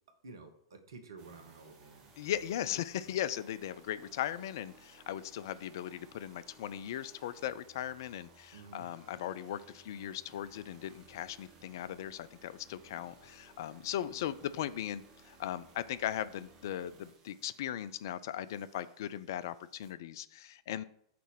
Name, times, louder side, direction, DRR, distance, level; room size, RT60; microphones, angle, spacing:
voice 1, 0.2-2.1 8.5-8.9, right 4 dB, 65° right, 7 dB, 1.2 m, -51 dB
sound 1, 1.2-19.9, right 3 dB, 35° right, 1.7 m, -60 dB
voice 2, 2.2-20.8, left 11 dB, 55° left, 15 dB, 0.4 m, -38 dB
5.9 x 4.1 x 6.1 m, 0.67 s
figure-of-eight pair, 95°, 2 cm